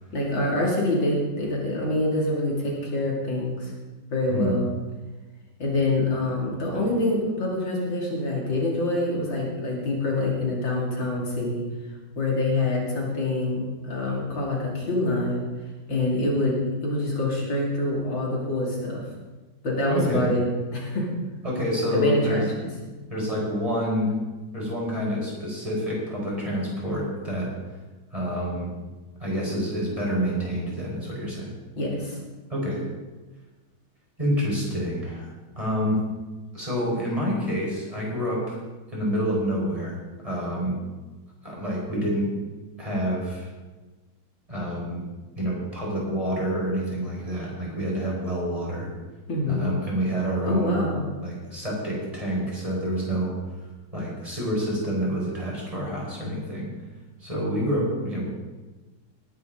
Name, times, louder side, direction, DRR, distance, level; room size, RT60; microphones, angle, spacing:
voice 1, 0.1-3.7 4.1-4.7 5.6-11.6 12.2-15.5 15.9-19.0 19.6-20.5 20.7-21.1 21.9-22.7 31.7-32.2 49.3-49.7 50.4-51.1, left 2 dB, 65° left, -2 dB, 3.3 m, -26 dB
voice 2, 19.9-20.3 21.4-22.5 23.1-24.1 24.5-27.5 28.1-28.7 29.2-31.5 32.5-32.8 34.2-35.3 35.6-36.0 36.5-38.6 38.9-40.0 40.2-40.8 41.4-42.2 42.8-43.5 44.5-45.0 45.3-48.9 49.5-50.8 51.2-53.3 53.9-56.7 57.2-58.3, equal, 15° right, -4 dB, 4.6 m, -27 dB
18.5 x 11.5 x 3.8 m, 1.2 s
omnidirectional pair, 2.2 m